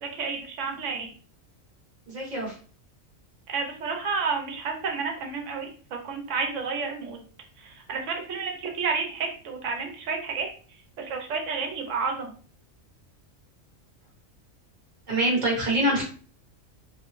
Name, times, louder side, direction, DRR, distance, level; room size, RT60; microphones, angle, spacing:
voice 1, 0.0-1.1 3.5-7.2 7.7-10.5 11.0-12.3, right 5 dB, 75° right, 2 dB, 1.0 m, -30 dB
voice 2, 2.1-2.5 15.1-16.0, right 1 dB, 35° right, -3 dB, 1.1 m, -24 dB
2.6 x 2.1 x 3.0 m, 0.42 s
omnidirectional pair, 1.3 m